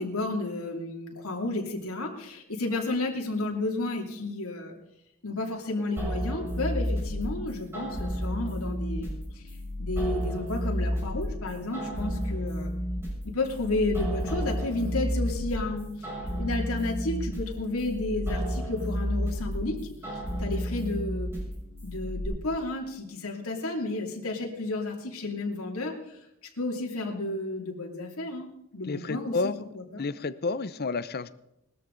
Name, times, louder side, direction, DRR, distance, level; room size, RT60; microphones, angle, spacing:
voice 1, 0.0-4.7 5.2-9.4 9.8-12.7 13.2-16.1 16.4-19.8 20.4-21.3 21.8-25.9 26.6-28.5 28.7-29.5 29.9-30.0, left 2 dB, 85° left, 0 dB, 2.8 m, -32 dB
sound 1, 6.0-22.3, equal, 10° right, 6.6 m, -32 dB
voice 2, 28.8-29.6 30.0-31.3, left 3 dB, 45° left, 15 dB, 0.7 m, -30 dB
20.0 x 13.5 x 4.0 m, 0.85 s
head